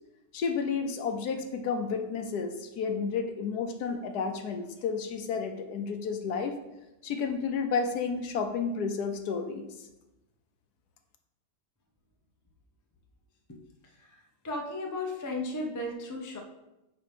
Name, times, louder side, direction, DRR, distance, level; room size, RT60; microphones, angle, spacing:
voice 1, 0.3-6.6 7.0-9.7, left 5 dB, 70° left, 6 dB, 1.2 m, -31 dB
voice 2, 14.4-16.4, left 2 dB, 30° left, 1 dB, 0.3 m, -34 dB
8.9 x 3.0 x 5.0 m, 0.96 s
omnidirectional pair, 1.8 m